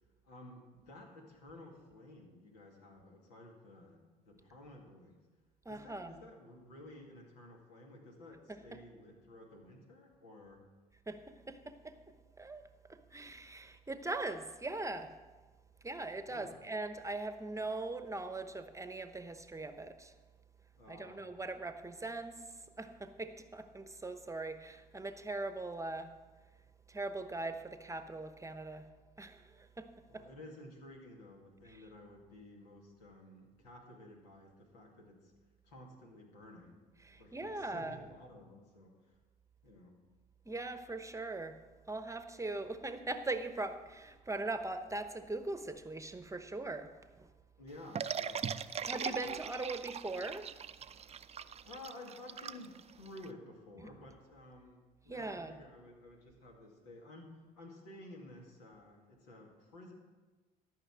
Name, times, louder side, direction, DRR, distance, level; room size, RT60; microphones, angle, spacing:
voice 1, 0.2-5.2 5.7-10.6 16.3-16.6 20.8-21.4 30.1-35.3 35.6-36.8 37.1-39.2 39.6-40.0 47.6-48.5 51.6-59.9, left 1 dB, 80° left, 0 dB, 2.3 m, -53 dB
voice 2, 5.6-6.1 8.5-8.8 11.1-12.0 12.4-12.6 12.9-15.1 15.8-20.1 20.9-22.4 22.8-26.2 26.9-28.9 29.2-30.2 37.0-38.0 40.5-41.6 41.9-46.9 47.2-47.3 48.9-50.5 53.8-53.9 55.1-55.6, right 2 dB, 15° right, 9 dB, 1.0 m, -41 dB
sound 1, 48.0-53.3, right 7 dB, 30° right, 0.5 m, -40 dB
13.5 x 5.8 x 7.4 m, 1.3 s
hypercardioid pair, 55°, 20 cm